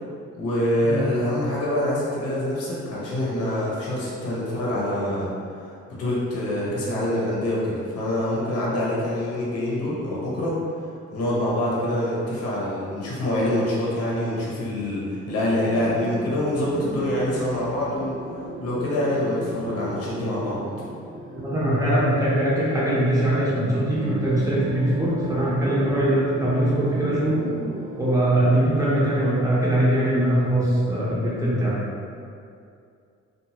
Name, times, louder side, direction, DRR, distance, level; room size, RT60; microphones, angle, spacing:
voice 1, 0.4-5.3 6.0-10.6 11.1-18.1 18.6-20.6, left 1 dB, 50° left, -6 dB, 0.9 m, -25 dB
sound 1, 15.6-30.8, right 2 dB, 75° right, 0.6 m, -37 dB
voice 2, 21.4-27.5 28.0-31.8, right 1 dB, 10° right, -8 dB, 0.9 m, -22 dB
2.6 x 2.4 x 2.9 m, 2.4 s
cardioid pair, 90°, 30 cm